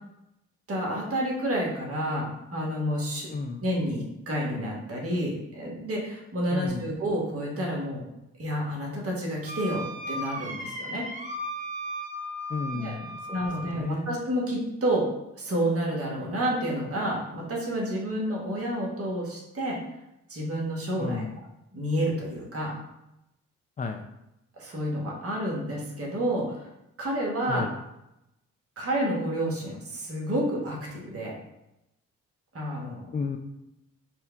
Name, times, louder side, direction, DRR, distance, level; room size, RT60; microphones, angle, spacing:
voice 1, 0.7-3.3 3.6-8.0 8.4-11.0 12.7-13.0 13.3-15.1 15.4-19.8 20.3-21.2 21.7-22.7 24.6-26.7 27.0-27.6 28.8-31.3 32.5-33.0, equal, 45° right, -2 dB, 1.3 m, -29 dB
voice 2, 3.3-3.7 6.5-7.0 12.5-14.2 21.0-21.4 23.8-24.0 27.5-27.7 33.1-33.4, left 4 dB, 25° left, 5 dB, 0.4 m, -33 dB
Wind instrument woodwind instrument, 9.5-13.8, equal, 25° right, 0.9 m, -36 dB
4.5 x 2.2 x 3.4 m, 0.88 s
supercardioid pair, 50°, 34 cm